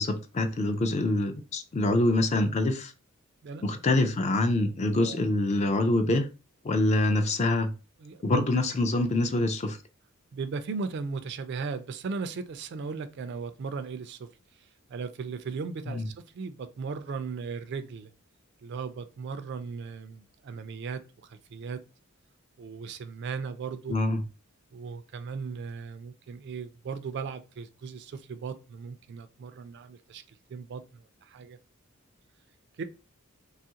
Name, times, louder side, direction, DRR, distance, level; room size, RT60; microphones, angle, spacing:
voice 1, 0.0-2.9 3.6-6.3 6.6-7.7 8.2-9.8 15.9-16.1 23.9-24.2, left 2 dB, 30° left, 0.3 m, -25 dB
voice 2, 8.0-8.4 10.3-14.3 14.9-18.1 18.6-21.8 22.6-24.0 24.7-30.2 30.5-31.6 32.8-32.9, right 5 dB, 50° right, 0.3 m, -37 dB
3.0 x 2.4 x 2.7 m
head